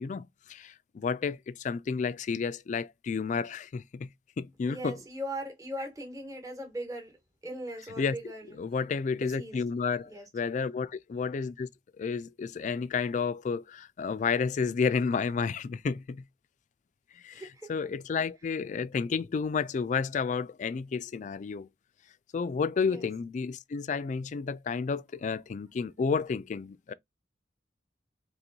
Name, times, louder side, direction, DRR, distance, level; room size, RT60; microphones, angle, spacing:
voice 1, 0.0-4.1 4.4-5.0 8.0-8.1 8.6-11.7 12.0-16.2 17.2-17.4 17.7-21.7 22.3-26.9, left 5 dB, 40° left, 0.3 m, -31 dB
voice 2, 4.7-7.1 7.4-8.4 9.1-9.6 10.0-10.3 17.3-17.7 22.8-23.1, equal, 20° right, 1.2 m, -39 dB
4.4 x 3.1 x 2.6 m
head